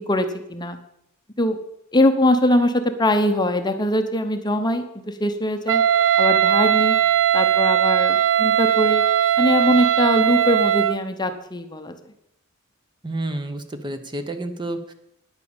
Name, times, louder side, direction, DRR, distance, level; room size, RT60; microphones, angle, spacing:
voice 1, 0.1-0.8 1.4-1.6 1.9-5.8 6.2-7.0 7.3-9.0 9.4-11.9, left 1 dB, 20° left, 7 dB, 0.8 m, -21 dB
Wind instrument woodwind instrument, 5.7-11.0, right 10 dB, 60° right, 0.3 m, -19 dB
voice 2, 13.0-14.9, right 1 dB, 20° right, 8 dB, 0.9 m, -30 dB
9.8 x 9.0 x 7.0 m, 0.80 s
head